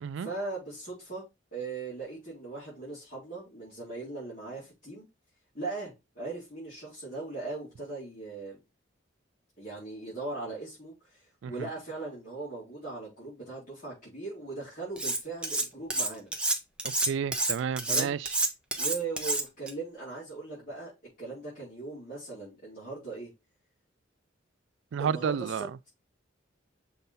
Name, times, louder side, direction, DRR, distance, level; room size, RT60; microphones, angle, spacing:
voice 1, 0.2-1.2 1.5-5.1 5.5-8.6 9.6-16.3 17.9-18.1 18.8-20.9 21.2-23.3 25.0-25.7, right 3 dB, 40° left, 4.3 m, -39 dB
Cutlery silverware, 15.0-15.6 15.9-19.7, right 2 dB, 5° right, 0.8 m, -28 dB
voice 2, 17.0-18.3 24.9-25.7, right 7 dB, 70° right, 0.3 m, -31 dB
6.8 x 4.0 x 3.9 m
head